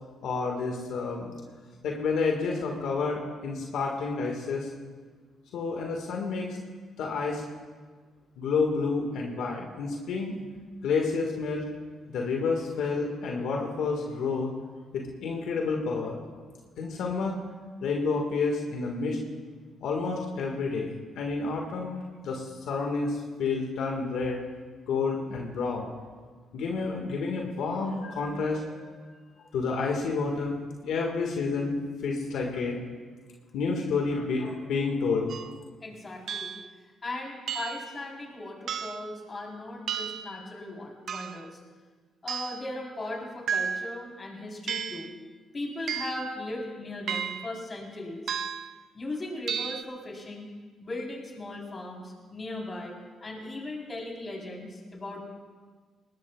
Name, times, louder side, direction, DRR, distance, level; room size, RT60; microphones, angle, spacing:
voice 1, 0.2-1.3 1.8-4.7 5.5-6.5 7.0-7.4 8.4-10.4 10.8-11.7 12.1-14.5 14.9-16.2 16.8-17.4 17.8-19.2 19.8-22.0 22.2-24.4 24.9-25.9 26.5-29.0 29.5-31.8 32.0-32.8 33.5-35.4, left 4 dB, 80° left, 0 dB, 1.8 m, -29 dB
sound 1, 35.3-35.5 36.3-36.7 37.5-37.9 38.7-39.1 39.9-40.4 41.1-41.5 42.3-42.7 43.5-44.0 44.7-45.1 45.9-46.3 47.1-47.6 48.3-48.7 49.5-49.8, right 7 dB, 65° right, 0.5 m, -33 dB
voice 2, 35.8-36.5 37.0-41.6 42.2-45.1 45.5-48.3 48.9-50.5 50.8-55.2, left 2 dB, 30° left, -1 dB, 3.9 m, -38 dB
20.0 x 19.0 x 2.4 m, 1.5 s
cardioid pair, 90°, 0 cm